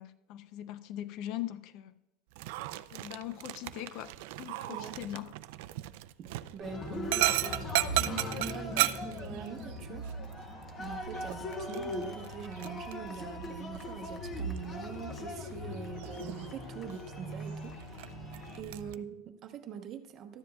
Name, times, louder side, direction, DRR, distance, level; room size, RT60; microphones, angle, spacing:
voice 1, 0.0-1.9 2.9-5.3, left 13 dB, 50° left, 0.5 m, -41 dB
Dog, 2.3-18.9, right 16 dB, 70° right, 0.4 m, -37 dB
voice 2, 4.7-5.0 6.2-7.7 8.0-10.1 10.4-17.7 18.6-20.4, right 7 dB, 35° right, 0.9 m, -44 dB
Cheering, 6.6-18.6, left 2 dB, 20° left, 0.8 m, -42 dB
sound 1, 6.9-19.1, right 1 dB, 85° left, 1.7 m, -44 dB
13.5 x 10.0 x 2.3 m
supercardioid pair, 160°, 0 cm